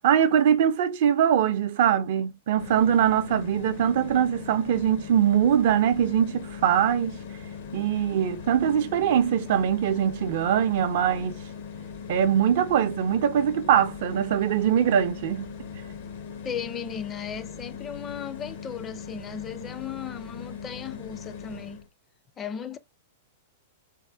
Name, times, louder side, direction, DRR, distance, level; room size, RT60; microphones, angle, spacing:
voice 1, 0.0-7.2 7.7-11.4 12.1-15.5, right 9 dB, 60° right, 0.4 m, -22 dB
sound 1, 2.6-21.9, left 6 dB, 70° left, 0.7 m, -40 dB
voice 2, 16.4-21.8 22.4-22.8, left 7 dB, 25° left, 0.4 m, -36 dB
3.5 x 2.1 x 2.3 m
hypercardioid pair, 110°, 0 cm